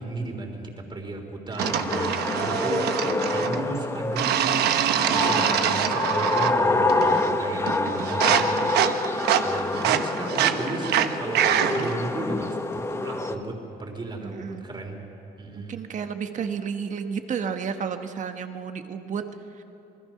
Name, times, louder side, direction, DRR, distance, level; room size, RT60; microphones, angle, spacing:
voice 1, 0.0-2.8 3.3-4.6 5.1-8.7 9.4-15.0 15.4-15.8, right 2 dB, 25° right, 3 dB, 3.7 m, -34 dB
sound 1, 1.6-13.3, left 2 dB, 15° left, 1.2 m, -27 dB
sound 2, 1.6-3.6 4.2-6.6 6.9-7.4 7.7-12.0, right 10 dB, 75° right, 1.1 m, -25 dB
voice 2, 14.2-14.7 15.5-19.2 19.6-19.7, right 6 dB, 45° right, 7 dB, 1.5 m, -31 dB
27.5 x 20.5 x 5.9 m, 3.0 s
cardioid pair, 110°, 17 cm